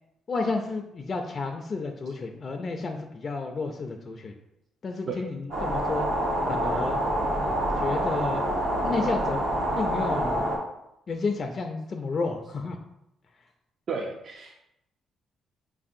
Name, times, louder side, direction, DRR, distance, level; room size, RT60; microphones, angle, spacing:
voice 1, 0.3-4.3 4.8-6.1 6.5-7.0 7.8-8.5 8.8-9.5 9.7-10.5 11.1-12.8, left 3 dB, 40° left, 4 dB, 0.3 m, -31 dB
sound 1, 5.5-10.6, right 1 dB, 80° right, 1.2 m, -27 dB
voice 2, 13.9-14.6, right 5 dB, 55° right, 1 dB, 0.4 m, -33 dB
5.1 x 2.6 x 2.5 m, 0.85 s
cardioid pair, 90°, 0 cm